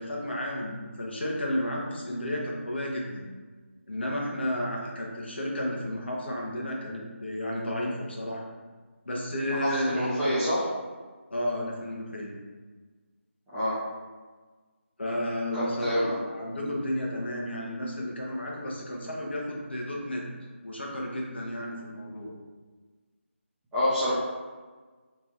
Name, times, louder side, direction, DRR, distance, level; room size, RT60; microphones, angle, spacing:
voice 1, 0.0-3.3 3.9-8.5 9.0-10.1 11.3-12.3 15.0-20.3 20.6-22.3, left 1 dB, 55° left, -2 dB, 0.8 m, -32 dB
voice 2, 9.5-10.7 13.5-13.8 15.5-16.1 23.7-24.1, equal, 5° right, -16 dB, 0.4 m, -27 dB
3.0 x 2.4 x 4.2 m, 1.4 s
figure-of-eight pair, 160°, 7 cm